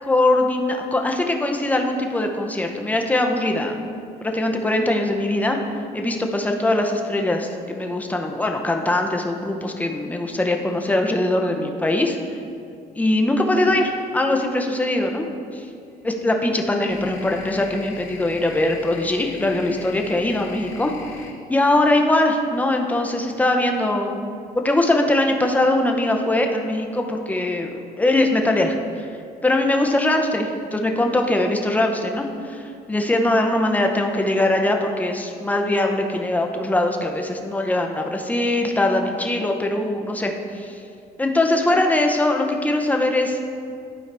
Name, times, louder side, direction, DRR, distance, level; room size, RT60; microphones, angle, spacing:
voice 1, 0.0-3.8 4.2-5.6 5.9-12.2 13.0-15.3 15.5-15.7 16.0-20.9 21.5-24.2 24.5-29.1 29.4-40.8 41.2-43.5, left 1 dB, 10° left, 3 dB, 0.7 m, -21 dB
sound 1, 13.7-13.8 15.9-22.9, left 3 dB, 45° left, 1.9 m, -41 dB
12.0 x 4.6 x 3.4 m, 2.4 s
cardioid pair, 110°, 17 cm